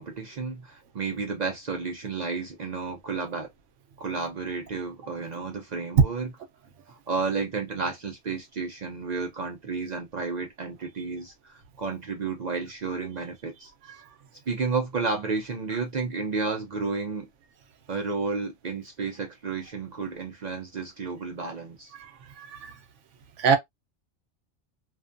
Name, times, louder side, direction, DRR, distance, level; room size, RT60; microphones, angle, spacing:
voice 1, 0.0-3.5 4.0-6.3 7.1-13.7 14.5-17.3 17.9-21.9, right 4 dB, 55° right, 0.5 m, -32 dB
voice 2, 22.4-22.7 23.4-23.6, right 6 dB, 75° right, 0.9 m, -23 dB
2.5 x 2.2 x 2.4 m
omnidirectional pair, 1.3 m